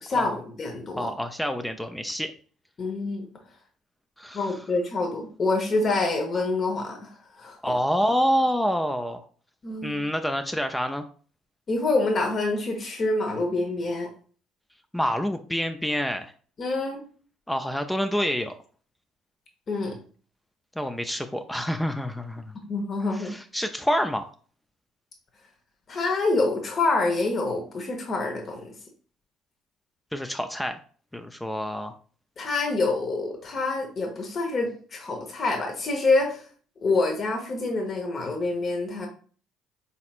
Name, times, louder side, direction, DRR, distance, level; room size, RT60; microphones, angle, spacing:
voice 1, 0.0-1.1 2.8-3.3 4.3-7.6 9.6-10.0 11.7-14.1 16.6-17.0 19.7-20.0 22.7-23.3 25.9-28.7 32.4-36.5 36.8-39.1, left 3 dB, 40° left, 2 dB, 1.1 m, -26 dB
voice 2, 0.9-2.3 4.2-4.5 7.6-9.2 9.8-11.0 14.9-16.3 17.5-18.5 20.8-22.5 23.1-24.3 30.1-30.8 31.1-31.9, equal, 5° left, 7 dB, 0.4 m, -27 dB
4.2 x 4.1 x 2.4 m, 0.43 s
hypercardioid pair, 60°, 0 cm